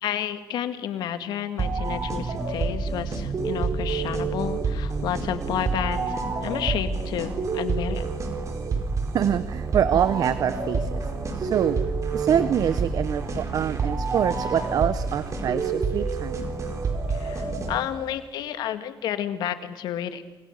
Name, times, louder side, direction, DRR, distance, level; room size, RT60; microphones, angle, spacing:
voice 1, 0.0-8.1 17.1-20.2, left 10 dB, 85° left, 10 dB, 1.8 m, -31 dB
sound 1, 1.6-18.1, right 4 dB, 45° right, 4.5 m, -28 dB
voice 2, 9.1-11.0 11.4-11.8 12.1-16.5, right 9 dB, 60° right, 13 dB, 1.0 m, -25 dB
29.0 x 24.0 x 6.7 m, 1.2 s
cardioid pair, 115°, 7 cm